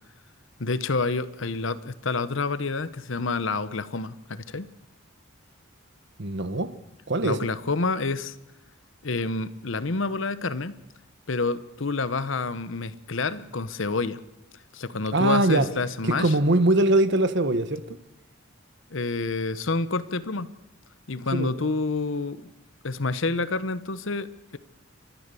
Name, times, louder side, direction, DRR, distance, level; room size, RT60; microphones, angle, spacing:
voice 1, 0.6-4.7 7.2-8.4 9.0-10.8 11.3-14.2 14.7-16.3 18.9-20.5 21.1-22.5 22.8-24.6, left 3 dB, 65° left, 1.0 m, -28 dB
voice 2, 6.2-6.7 7.1-7.4 15.1-15.7 16.2-17.8 21.3-21.5, right 2 dB, 55° right, 1.2 m, -22 dB
29.5 x 13.0 x 6.9 m
head